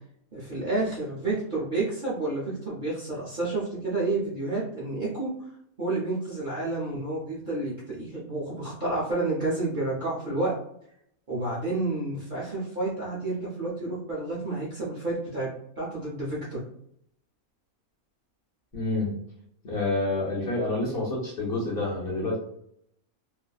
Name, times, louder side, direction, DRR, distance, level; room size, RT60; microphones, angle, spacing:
voice 1, 0.3-5.3 5.8-10.5 11.3-15.5 15.8-16.6, right 2 dB, 50° right, -6 dB, 0.7 m, -30 dB
voice 2, 18.7-19.1 19.6-22.4, left 2 dB, 50° left, -5 dB, 0.8 m, -28 dB
2.6 x 2.4 x 2.2 m, 0.71 s
omnidirectional pair, 1.5 m